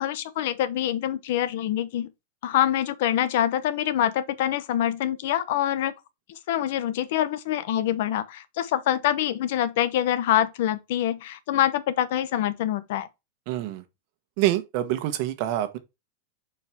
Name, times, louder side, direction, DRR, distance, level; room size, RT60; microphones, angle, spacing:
voice 1, 0.0-2.1 2.4-5.9 6.5-13.1, left 11 dB, 60° left, 0.8 m, -25 dB
voice 2, 13.5-13.8 14.4-15.8, right 14 dB, 45° right, 1.2 m, -26 dB
7.3 x 4.8 x 3.6 m
supercardioid pair, 165°, 0 cm